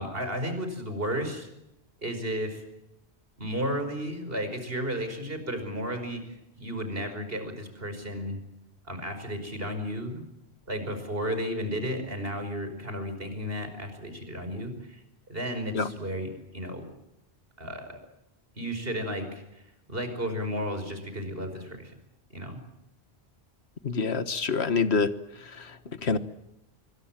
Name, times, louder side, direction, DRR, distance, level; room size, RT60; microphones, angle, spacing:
voice 1, 0.0-1.5 2.0-2.6 3.4-8.4 8.8-10.3 10.7-15.0 15.3-16.3 16.5-16.8 17.6-18.0 18.6-19.6 19.9-21.9 22.3-22.6, equal, 60° right, 8 dB, 5.5 m, -33 dB
voice 2, 23.8-25.1 25.4-26.2, left 4 dB, 75° left, 12 dB, 1.7 m, -27 dB
26.5 x 23.5 x 7.5 m, 0.88 s
omnidirectional pair, 1.1 m